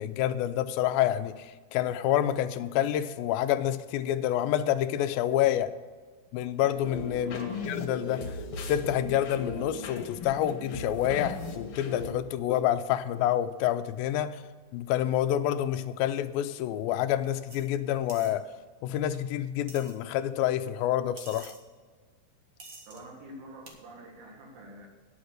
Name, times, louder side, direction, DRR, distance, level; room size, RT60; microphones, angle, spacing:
voice 1, 0.0-5.7 6.3-8.4 8.7-14.4 14.7-18.5 18.8-21.6, left 11 dB, 80° left, 12 dB, 2.3 m, -28 dB
sound 1, 6.8-12.1, left 3 dB, 60° left, 2.2 m, -37 dB
voice 2, 7.2-7.7 22.9-24.9, right 1 dB, 75° right, 0 dB, 3.6 m, -47 dB
sound 2, 17.5-17.7 18.1-18.3 19.1-19.2 19.7-19.9 21.2-21.6 22.6-23.0 23.7-23.8, right 3 dB, 60° right, 1.0 m, -47 dB
10.0 x 7.1 x 6.4 m, 1.5 s
omnidirectional pair, 4.2 m